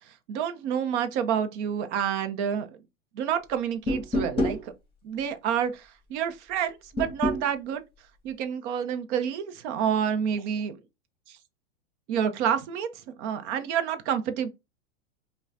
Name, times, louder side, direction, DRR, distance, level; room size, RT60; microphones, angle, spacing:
voice 1, 0.3-2.7 3.1-4.7 5.0-7.8 8.2-10.8 11.3-11.4 12.1-12.9 13.2-14.5, right 8 dB, 60° right, 0.8 m, -28 dB
sound 1, 3.9-4.6 7.0-7.4, left 1 dB, 15° left, 1.8 m, -26 dB
5.5 x 2.3 x 2.6 m
hypercardioid pair, 125°, 39 cm